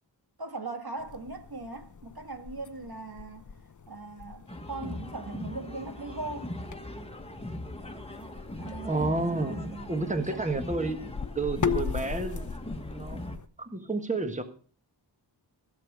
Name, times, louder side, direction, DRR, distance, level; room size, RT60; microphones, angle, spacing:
voice 1, 0.4-3.5 3.9-6.6 8.6-10.4, right 3 dB, 50° right, 1.6 m, -40 dB
sound 1, 1.0-13.5, left 6 dB, 40° left, 0.7 m, -39 dB
sound 2, 4.5-13.4, left 1 dB, 15° left, 1.5 m, -40 dB
voice 2, 8.8-11.0 11.3-12.5 12.9-13.2 13.6-14.4, right 3 dB, 15° right, 1.5 m, -30 dB
16.5 x 7.0 x 6.2 m
wide cardioid pair, 75°, 46 cm